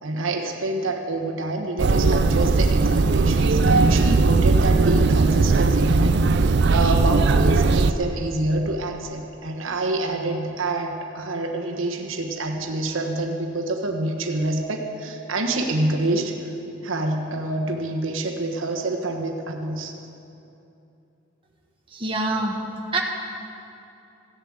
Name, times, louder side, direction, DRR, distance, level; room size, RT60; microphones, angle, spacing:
voice 1, 0.0-16.3 16.8-19.9, right 2 dB, 90° right, 3 dB, 1.3 m, -27 dB
sound 1, 1.8-7.9, right 3 dB, 55° right, 0.4 m, -18 dB
voice 2, 21.9-22.6 22.9-23.0, right 2 dB, 25° right, 0 dB, 1.3 m, -25 dB
15.0 x 7.2 x 8.9 m, 2.8 s
head